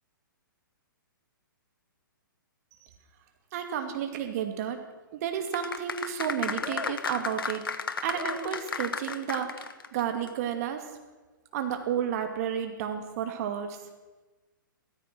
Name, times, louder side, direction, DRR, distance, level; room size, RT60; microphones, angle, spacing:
voice 1, 3.5-4.8 5.2-7.7 8.0-10.8 11.5-13.8, right 9 dB, 45° right, 6 dB, 2.5 m, -31 dB
sound 1, 5.5-10.0 10.3-10.4, left 5 dB, 90° left, 1.2 m, -33 dB
16.0 x 14.0 x 6.2 m, 1.2 s
hypercardioid pair, 140°, 11 cm